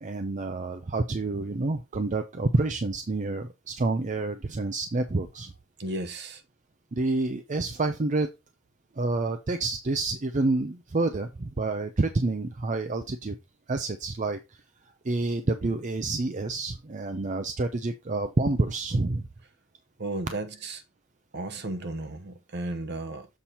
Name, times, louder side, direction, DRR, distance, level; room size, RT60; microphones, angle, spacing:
voice 1, 0.0-5.5 6.9-8.3 9.0-13.4 13.7-14.6 15.0-19.3, right 2 dB, 35° right, 0.6 m, -28 dB
voice 2, 5.8-6.4 20.0-20.8 21.3-23.3, right 2 dB, 55° right, 1.1 m, -34 dB
7.3 x 4.3 x 4.3 m
head